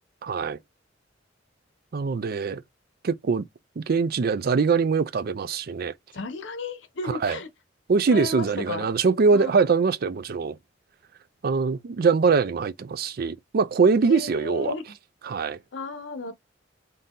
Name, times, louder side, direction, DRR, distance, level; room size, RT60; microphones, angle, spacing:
voice 1, 0.2-0.6 1.9-2.6 3.0-3.4 3.8-5.9 7.0-7.4 7.9-10.6 11.4-14.7 15.2-15.6, right 5 dB, 55° right, 0.4 m, -23 dB
voice 2, 6.1-7.5 8.1-8.8 9.3-9.5 14.1-14.8 15.7-16.3, left 3 dB, 70° left, 0.8 m, -33 dB
4.0 x 2.7 x 3.7 m
head